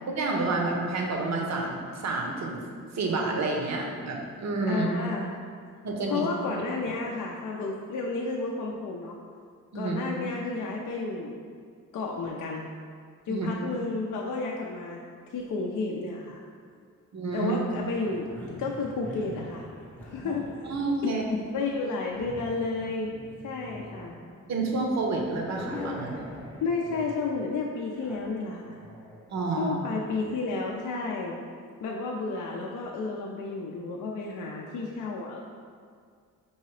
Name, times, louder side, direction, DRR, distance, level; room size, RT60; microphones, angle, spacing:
voice 1, 0.2-2.6 2.9-4.9 5.8-6.2 9.7-10.0 13.3-13.5 17.1-17.5 20.2-20.3 20.7-21.2 24.5-26.2 29.3-29.8, right 3 dB, 55° right, 0 dB, 0.7 m, -29 dB
voice 2, 4.7-5.3 6.1-9.2 9.7-11.4 11.9-12.7 13.3-15.0 15.3-16.4 17.3-18.3 18.6-19.7 20.0-20.7 21.0-23.1 23.4-24.2 26.6-28.8 29.6-31.4 31.8-35.4, left 3 dB, 60° left, -1 dB, 0.5 m, -32 dB
sound 1, 17.7-30.4, left 1 dB, 5° left, 0.7 m, -44 dB
4.6 x 2.8 x 3.1 m, 2.1 s
cardioid pair, 85°, 34 cm